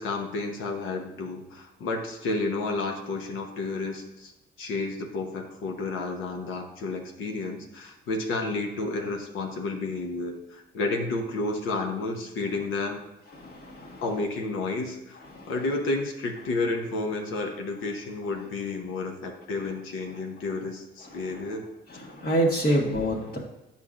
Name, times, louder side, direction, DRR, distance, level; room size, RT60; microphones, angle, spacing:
voice 1, 0.0-4.3 4.6-13.0 14.0-21.6, left 3 dB, 85° left, 3 dB, 1.0 m, -31 dB
voice 2, 13.3-14.0 15.3-15.5 21.0-21.4 21.9-23.4, right 1 dB, 50° left, -3 dB, 1.5 m, -27 dB
8.4 x 5.7 x 2.5 m, 0.95 s
cardioid pair, 90°, 20 cm